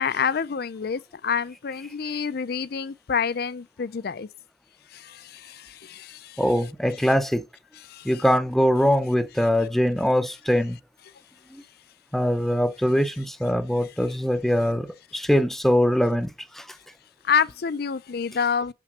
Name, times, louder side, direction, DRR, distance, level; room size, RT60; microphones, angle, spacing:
voice 1, 0.0-4.3 4.9-6.4 7.0-7.1 7.8-8.2 17.2-18.7, left 6 dB, 60° left, 0.5 m, -28 dB
voice 2, 6.4-7.4 8.0-10.8 11.5-11.6 12.1-14.9 15.1-16.7, equal, ahead, 0.6 m, -22 dB
6.9 x 6.0 x 6.1 m
head